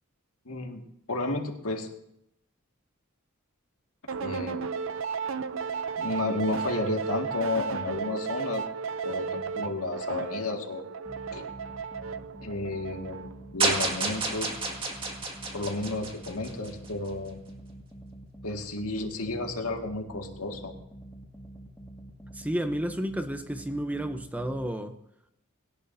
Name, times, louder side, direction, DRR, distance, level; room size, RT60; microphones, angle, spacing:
voice 1, 0.5-0.8 1.1-1.9 4.2-4.6 6.0-8.6 9.0-10.8 11.3-11.5 12.4-13.2 13.5-14.5 15.5-17.4 18.4-20.7, left 2 dB, 90° left, 3 dB, 2.0 m, -32 dB
sound 1, 4.1-13.5, right 6 dB, 65° right, 0.6 m, -34 dB
sound 2, 11.0-24.7, right 1 dB, 15° left, 1.9 m, -47 dB
sound 3, 13.6-16.9, right 3 dB, 25° right, 2.0 m, -30 dB
voice 2, 22.3-25.0, right 1 dB, 5° right, 8 dB, 0.7 m, -31 dB
20.5 x 18.0 x 2.7 m, 0.80 s
head